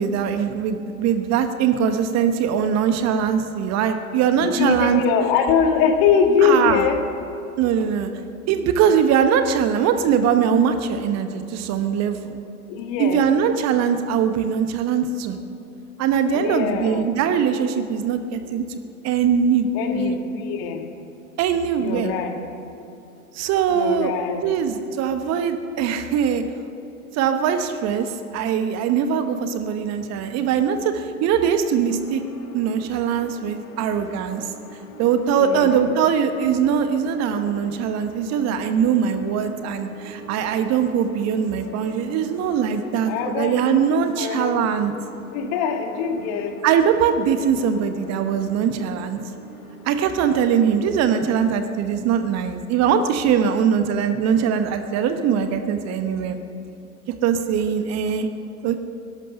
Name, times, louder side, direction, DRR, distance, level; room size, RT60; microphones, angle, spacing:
voice 1, 0.0-5.0 6.4-6.8 7.6-8.1 8.5-12.4 13.0-15.4 16.0-18.8 19.0-20.2 21.4-22.1 23.3-24.1 24.4-26.4 27.1-32.2 32.5-34.5 35.0-44.9 46.6-49.2 49.8-56.4 57.2-58.3 58.6-58.8, right 7 dB, 35° right, 8 dB, 1.1 m, -21 dB
voice 2, 4.6-7.0 12.7-13.2 16.3-17.1 19.7-20.8 21.8-22.4 23.7-24.4 35.4-35.9 43.1-44.5 45.3-46.6, left 6 dB, 45° left, 5 dB, 2.0 m, -22 dB
sound 1, 31.8-51.4, equal, 60° left, 2.4 m, -43 dB
17.5 x 11.5 x 6.6 m, 2.9 s
hypercardioid pair, 95°, 45 cm